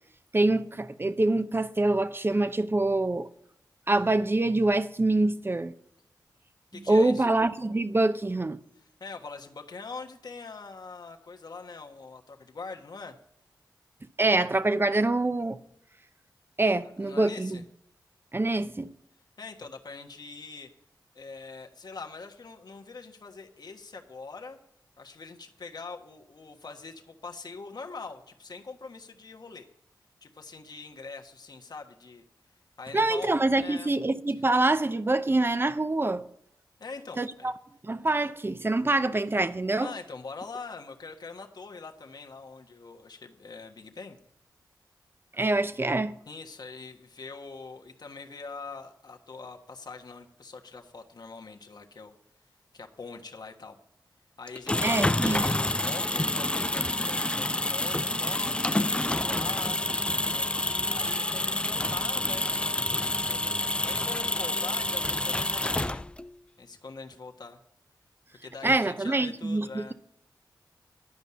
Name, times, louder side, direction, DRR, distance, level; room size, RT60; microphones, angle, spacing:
voice 1, 0.3-3.3 3.9-5.7 6.7-8.6 14.2-15.6 16.6-17.6 18.3-18.9 32.9-36.3 37.2-37.5 37.8-39.9 45.3-46.2 54.8-55.5 68.6-69.9, right 2 dB, 30° right, 0.8 m, -25 dB
voice 2, 6.7-7.3 9.0-13.2 16.8-17.6 19.4-20.7 21.1-24.6 25.0-29.7 30.2-32.2 32.8-33.9 36.8-37.5 39.8-44.2 46.3-52.1 52.7-53.8 54.4-66.1 66.6-67.6 68.4-69.9, left 4 dB, 60° left, 1.4 m, -43 dB
sound 1, 54.5-66.3, left 1 dB, 15° left, 0.3 m, -28 dB
11.5 x 5.4 x 8.6 m
cardioid pair, 40°, 8 cm